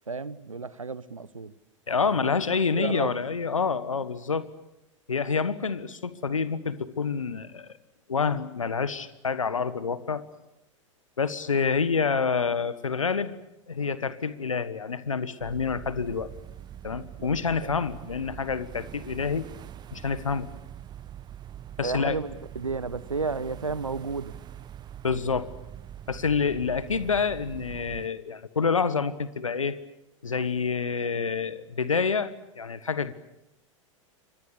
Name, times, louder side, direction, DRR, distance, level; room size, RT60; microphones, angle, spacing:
voice 1, 0.1-1.6 2.0-2.3 2.8-3.1 17.2-17.3 17.6-17.7 21.8-24.3, right 4 dB, 80° right, 1.1 m, -32 dB
voice 2, 1.9-4.5 5.1-7.7 8.1-10.2 11.2-13.3 13.7-16.3 16.8-19.4 19.9-20.5 21.8-22.2 25.0-25.5 26.1-29.8 30.2-33.1, left 5 dB, 75° left, 1.4 m, -27 dB
sound 1, 15.4-28.1, right 10 dB, 25° right, 1.2 m, -43 dB
30.0 x 25.0 x 7.0 m
figure-of-eight pair, 90°, 17 cm